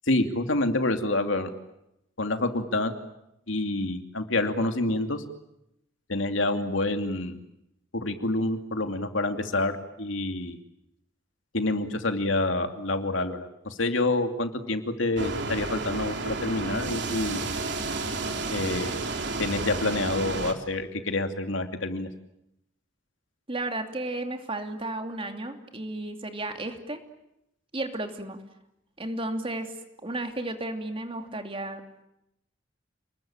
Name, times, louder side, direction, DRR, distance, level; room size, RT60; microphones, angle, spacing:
voice 1, 0.1-1.5 2.2-2.9 3.5-5.2 6.1-7.3 7.9-9.7 10.0-10.6 11.5-17.4 18.5-19.0 19.4-22.1, left 2 dB, 80° left, 6 dB, 2.7 m, -27 dB
sound 1, 15.2-20.5, right 3 dB, 60° right, 3.3 m, -31 dB
voice 2, 23.5-27.0 27.7-28.4 29.0-29.7 30.0-31.8, right 2 dB, 30° right, 6 dB, 2.8 m, -33 dB
29.5 x 21.0 x 9.0 m, 0.84 s
head